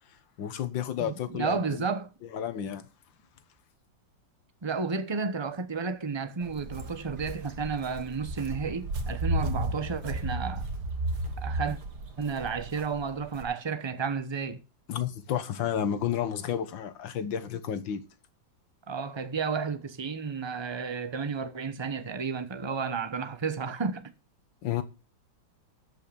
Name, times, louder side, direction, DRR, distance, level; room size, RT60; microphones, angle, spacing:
voice 1, 0.4-1.9 2.3-2.9 14.9-18.0 24.6-24.8, left 9 dB, 75° left, 1.9 m, -31 dB
voice 2, 1.0-2.1 4.6-10.7 11.4-11.8 12.2-14.6 18.9-24.1, right 5 dB, 25° right, 0.5 m, -32 dB
Walk footsteps, 6.4-13.4, right 1 dB, 55° right, 2.1 m, -34 dB
13.0 x 5.6 x 6.9 m
omnidirectional pair, 2.1 m